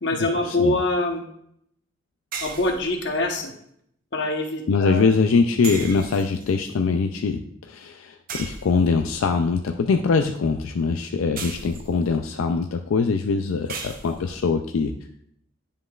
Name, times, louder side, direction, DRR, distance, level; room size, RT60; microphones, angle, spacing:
voice 1, 0.0-1.2 2.4-3.5 4.1-5.0, left 2 dB, 55° left, 3 dB, 1.0 m, -24 dB
sound 1, 2.3-3.3 5.6-6.7 8.3-9.1 11.4-12.2 13.7-14.4, right 5 dB, 45° right, 0.7 m, -36 dB
voice 2, 4.7-14.9, left 4 dB, 85° left, 5 dB, 0.4 m, -23 dB
9.6 x 5.2 x 2.4 m, 0.70 s
head